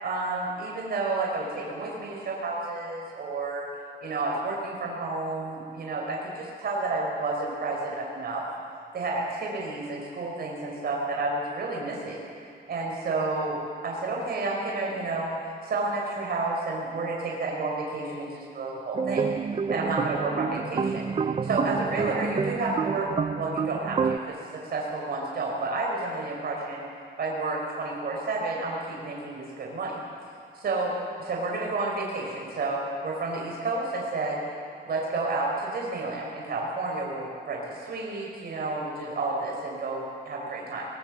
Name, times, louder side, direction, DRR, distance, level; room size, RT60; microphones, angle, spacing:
voice 1, 0.0-3.7 4.0-8.4 8.9-13.6 13.8-23.1 23.3-26.9 27.2-30.0 30.5-34.4 34.9-40.9, right 3 dB, 60° right, -2 dB, 4.2 m, -31 dB
sound 1, 18.9-24.2, right 5 dB, 30° right, 0.5 m, -28 dB
22.5 x 20.0 x 7.3 m, 2.4 s
cardioid pair, 105°, 18 cm